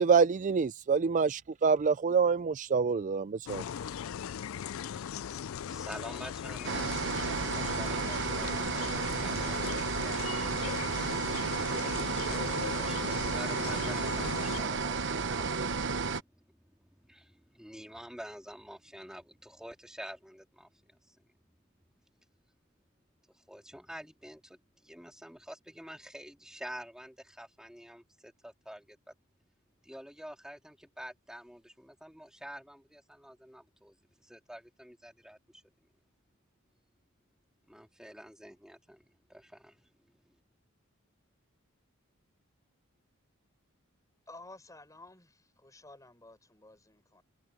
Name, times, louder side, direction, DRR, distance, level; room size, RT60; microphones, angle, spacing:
voice 1, 0.0-3.6, right 5 dB, 35° right, 0.3 m, -26 dB
sound 1, 3.5-14.6, left 8 dB, 70° left, 0.4 m, -39 dB
voice 2, 4.7-7.2 7.5-10.4 11.8-21.6 23.3-29.1 29.8-35.6 37.7-39.9 40.2-40.3, equal, 5° right, 3.6 m, -48 dB
sound 2, 6.6-16.2, right 4 dB, 60° right, 1.0 m, -32 dB
voice 3, 44.3-47.2, left 2 dB, 15° left, 6.6 m, -53 dB
head